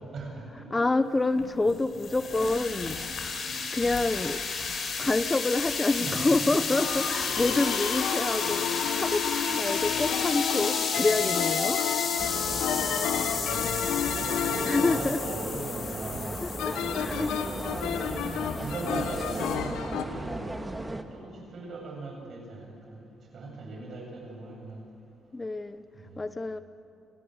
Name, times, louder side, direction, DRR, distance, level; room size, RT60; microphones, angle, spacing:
voice 1, 0.0-0.9 1.3-1.4 2.3-2.5 6.0-7.7 8.1-8.8 13.1-13.7 14.1-16.5 17.0-17.5 18.3-20.4 21.1-23.0 23.3-24.8 25.9-26.2, right 2 dB, 60° right, 0 dB, 7.7 m, -39 dB
voice 2, 0.7-3.0 3.7-4.4 5.0-8.6 8.9-11.8 14.7-15.2 16.4-17.3 25.3-25.8 26.2-26.6, left 2 dB, 25° left, 13 dB, 0.8 m, -27 dB
sound 1, 1.4-19.6, left 5 dB, 55° left, 4.4 m, -33 dB
sound 2, 6.7-20.0, left 8 dB, 85° left, 1.4 m, -31 dB
sound 3, 12.2-21.0, right 2 dB, 15° right, 1.8 m, -37 dB
30.0 x 17.0 x 8.1 m, 2.7 s
cardioid pair, 70°, 0 cm